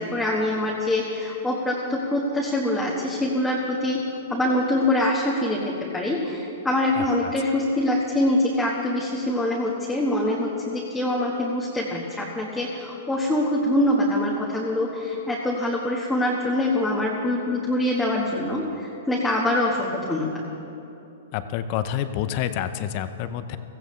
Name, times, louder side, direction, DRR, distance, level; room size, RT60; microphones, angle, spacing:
voice 1, 0.0-4.0 4.3-20.4, left 1 dB, 5° left, -5 dB, 1.4 m, -24 dB
voice 2, 7.0-7.3 21.3-23.6, left 10 dB, 45° left, 11 dB, 0.7 m, -28 dB
16.5 x 15.0 x 3.2 m, 2.9 s
hypercardioid pair, 135°, 0 cm